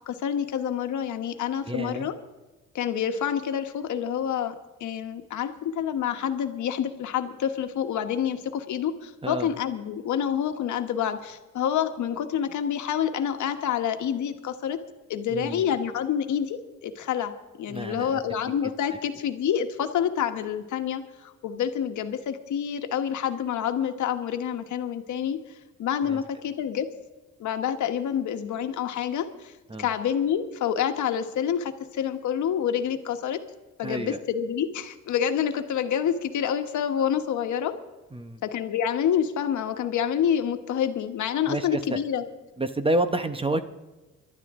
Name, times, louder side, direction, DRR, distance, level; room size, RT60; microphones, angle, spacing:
voice 1, 0.1-2.1 2.7-4.5 4.8-14.8 15.1-25.4 25.8-26.9 27.4-29.5 29.8-33.4 33.8-37.7 38.4-42.2, left 8 dB, 75° left, 7 dB, 1.4 m, -27 dB
voice 2, 1.6-2.1 9.2-9.5 15.3-15.6 17.7-18.2 26.0-26.2 29.7-29.9 33.8-34.2 38.1-38.4 41.4-42.0 42.6-43.6, right 1 dB, 20° right, 10 dB, 0.9 m, -29 dB
25.0 x 12.0 x 3.7 m, 1.1 s
cardioid pair, 90°, 30 cm